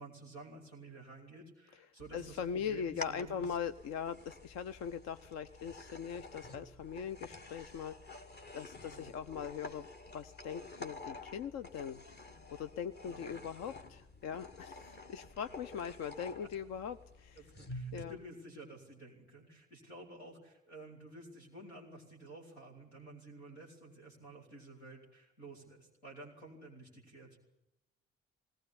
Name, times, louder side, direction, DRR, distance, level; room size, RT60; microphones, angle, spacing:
voice 1, 0.0-3.6 8.8-9.1 13.0-13.4 16.4-16.5 17.3-27.4, right 2 dB, 85° left, -1 dB, 4.2 m, -52 dB
sound 1, 2.0-18.0, left 2 dB, 35° left, 2.0 m, -50 dB
voice 2, 2.1-8.3 8.5-9.9 10.1-12.0 12.5-17.4 17.9-18.2, left 7 dB, 55° left, 12 dB, 0.8 m, -41 dB
20.5 x 19.0 x 9.7 m, 0.88 s
figure-of-eight pair, 40°, 31 cm